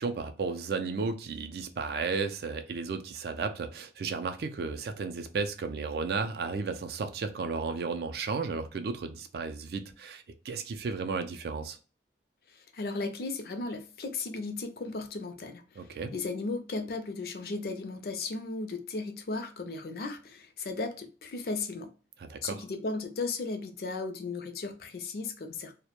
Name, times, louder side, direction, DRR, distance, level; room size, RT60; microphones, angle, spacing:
voice 1, 0.0-11.8 15.8-16.1 22.2-22.6, right 4 dB, 60° right, 0.3 m, -34 dB
voice 2, 12.5-21.9 22.4-25.7, left 3 dB, 55° left, 0.4 m, -36 dB
2.1 x 2.1 x 2.8 m
head